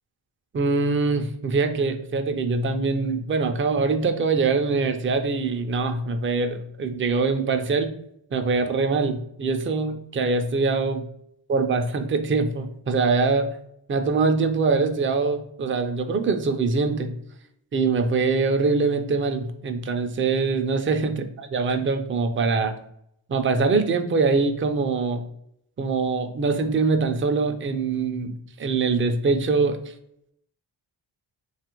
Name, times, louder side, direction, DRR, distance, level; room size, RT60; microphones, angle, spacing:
voice 1, 0.5-7.9 8.3-11.0 11.5-13.5 13.9-17.1 17.7-22.7 23.3-25.3 25.8-29.8, right 4 dB, 25° right, 7 dB, 0.4 m, -23 dB
2.9 x 2.4 x 2.9 m, 0.73 s
cardioid pair, 55°, 49 cm